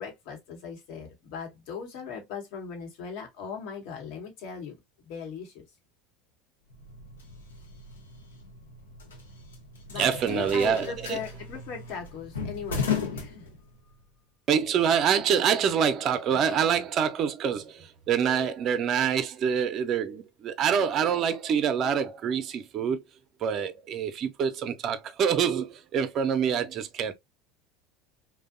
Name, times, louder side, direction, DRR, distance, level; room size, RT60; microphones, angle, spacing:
voice 1, 0.0-4.7 5.0-5.6 9.9-13.5, left 6 dB, 65° left, 1.0 m, -39 dB
sound 1, 6.7-14.0, left 5 dB, 90° left, 0.6 m, -36 dB
voice 2, 10.0-11.2 14.5-23.0 23.4-27.1, right 7 dB, 45° right, 0.5 m, -26 dB
2.6 x 2.1 x 2.4 m
hypercardioid pair, 80°, 0 cm